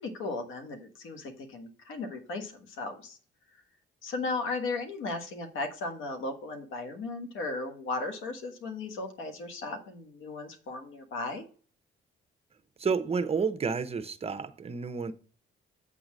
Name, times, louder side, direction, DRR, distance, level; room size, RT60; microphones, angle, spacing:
voice 1, 0.0-3.2 4.0-11.4, left 3 dB, 85° left, 1.5 m, -36 dB
voice 2, 12.8-15.1, right 5 dB, 30° right, 0.7 m, -30 dB
8.1 x 3.8 x 6.1 m
cardioid pair, 90°, 20 cm